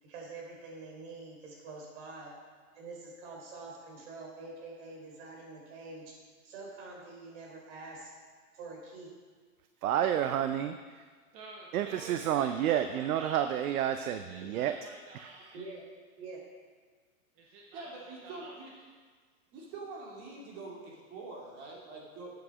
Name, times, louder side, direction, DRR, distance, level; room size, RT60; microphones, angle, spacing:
voice 1, 0.0-2.3 2.7-6.1 6.4-8.1 8.5-9.1 15.5-15.9 16.2-16.4, right 3 dB, 50° right, -1 dB, 3.7 m, -46 dB
voice 2, 9.8-10.8 11.7-14.7 15.2-15.3, right 10 dB, 75° right, 9 dB, 0.7 m, -30 dB
voice 3, 11.3-13.8 14.1-15.6 17.4-18.7, right 3 dB, 15° right, -2 dB, 0.5 m, -50 dB
voice 4, 17.7-18.7 19.5-22.3, right 3 dB, 35° right, -3 dB, 2.5 m, -45 dB
8.4 x 8.1 x 6.2 m, 1.5 s
hypercardioid pair, 155°, 43 cm